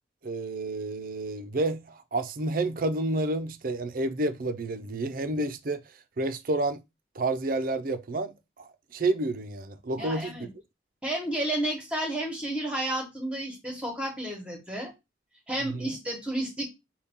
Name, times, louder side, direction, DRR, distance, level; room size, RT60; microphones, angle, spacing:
voice 1, 0.2-5.8 6.2-6.8 7.2-10.4 15.6-15.9, right 2 dB, 50° right, 0.5 m, -30 dB
voice 2, 10.0-10.5 11.0-14.9 15.5-16.7, right 1 dB, 5° right, 1.2 m, -31 dB
5.7 x 2.3 x 3.5 m
head